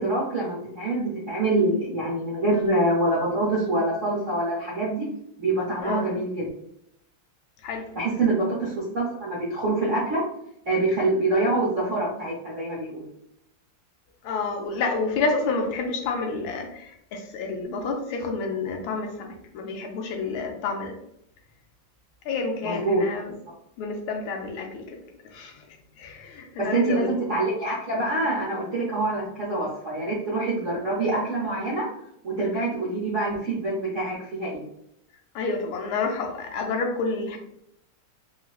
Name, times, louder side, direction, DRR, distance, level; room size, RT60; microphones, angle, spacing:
voice 1, 0.0-5.1 5.4-6.5 7.9-10.2 10.7-13.0 22.6-23.0 26.6-31.9 32.2-34.6, right 2 dB, 60° right, -6 dB, 0.8 m, -25 dB
voice 2, 14.2-20.9 22.2-23.3 23.8-25.0 25.3-27.2 35.3-37.4, left 4 dB, 75° left, 3 dB, 1.3 m, -29 dB
4.0 x 2.4 x 2.3 m, 0.75 s
omnidirectional pair, 2.3 m